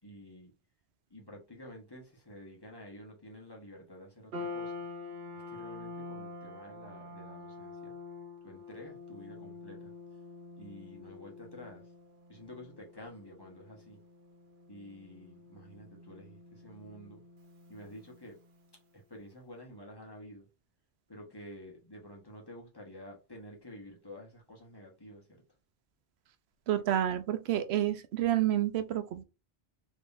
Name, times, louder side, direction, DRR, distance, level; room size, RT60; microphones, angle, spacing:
voice 1, 0.0-0.5 1.1-4.7 5.3-7.9 8.4-9.9 10.6-11.9 12.3-14.0 14.7-17.2 17.7-18.4 18.9-20.5 21.1-25.4, left 1 dB, 25° left, 1.0 m, -50 dB
sound 1, 4.3-18.7, left 3 dB, 60° right, 0.8 m, -47 dB
voice 2, 26.7-29.2, right 12 dB, 90° right, 0.8 m, -29 dB
3.5 x 3.1 x 2.5 m
omnidirectional pair, 1.1 m